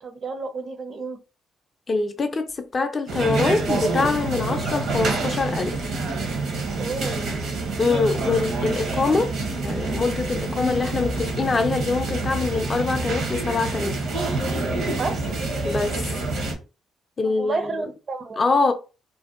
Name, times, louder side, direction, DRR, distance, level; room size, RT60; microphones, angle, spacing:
voice 1, 0.0-1.2 6.8-7.3 15.0-15.2 17.2-18.4, right 4 dB, 45° right, 0.4 m, -30 dB
voice 2, 1.9-5.8 7.8-9.3 9.6-14.0 15.6-16.0 17.2-17.7 18.4-18.7, left 3 dB, 35° left, 0.4 m, -24 dB
sound 1, 3.1-16.5, right 3 dB, 75° right, 0.7 m, -27 dB
2.6 x 2.1 x 2.4 m
cardioid pair, 90°, 0 cm